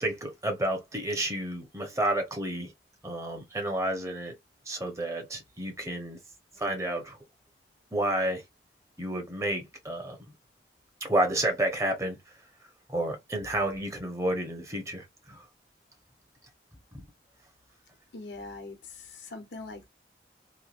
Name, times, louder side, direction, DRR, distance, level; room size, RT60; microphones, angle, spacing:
voice 1, 0.0-2.7 3.0-4.3 4.7-6.2 6.6-7.2 7.9-8.4 9.0-10.2 11.0-12.2 12.9-15.4 16.9-17.0, right 1 dB, 15° right, 0.9 m, -30 dB
voice 2, 18.1-19.9, left 3 dB, 85° left, 1.0 m, -42 dB
3.1 x 2.2 x 2.5 m
head